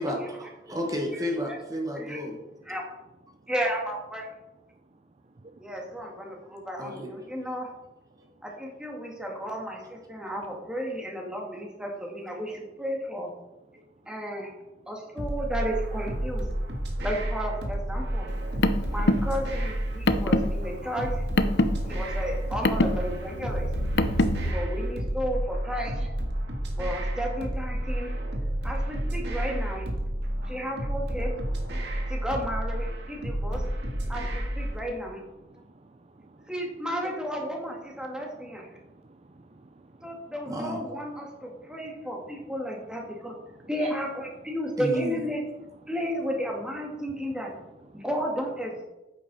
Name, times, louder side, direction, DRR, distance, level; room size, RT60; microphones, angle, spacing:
voice 1, 0.0-2.4 6.8-7.1 8.2-8.3 9.8-9.9 40.5-40.8 44.8-45.2, equal, 20° right, 2 dB, 1.2 m, -32 dB
voice 2, 3.5-4.3 5.6-7.7 8.4-13.3 14.1-14.5 14.9-16.4 17.0-18.3 18.9-21.3 21.9-23.7 24.4-26.1 26.8-28.2 28.6-29.9 30.5-31.3 32.1-33.6 34.1-35.2 36.5-38.7 40.0-43.3 43.7-45.4 45.9-47.5 47.9-48.8, equal, 5° right, -1 dB, 2.0 m, -33 dB
voice 3, 5.2-5.6 18.5-18.8 21.7-22.0 26.0-26.1 26.3-26.8 28.3-28.7 30.1-30.5 31.8-32.1 33.3-33.4 34.7-34.8 35.4-36.5 38.1-40.4 41.4-42.1 43.4-43.9 47.1-47.4 47.9-48.0, right 3 dB, 35° right, 6 dB, 0.5 m, -53 dB
sound 1, 15.2-34.8, right 1 dB, 70° right, 1.8 m, -30 dB
Car, 18.3-24.5, left 2 dB, 75° left, 0.7 m, -26 dB
9.4 x 8.9 x 4.1 m, 1.0 s
head